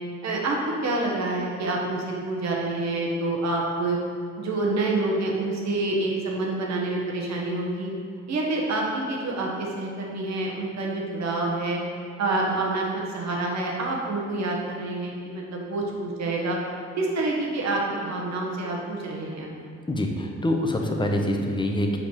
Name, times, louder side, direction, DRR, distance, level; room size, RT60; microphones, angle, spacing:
voice 1, 0.2-0.6 0.8-4.0 4.4-7.9 8.3-11.8 12.2-16.6 17.0-19.5, right 2 dB, 65° right, -2 dB, 1.6 m, -27 dB
voice 2, 19.9-22.0, left 1 dB, 15° left, 2 dB, 1.0 m, -25 dB
7.2 x 5.2 x 4.8 m, 2.3 s
cardioid pair, 90°, 30 cm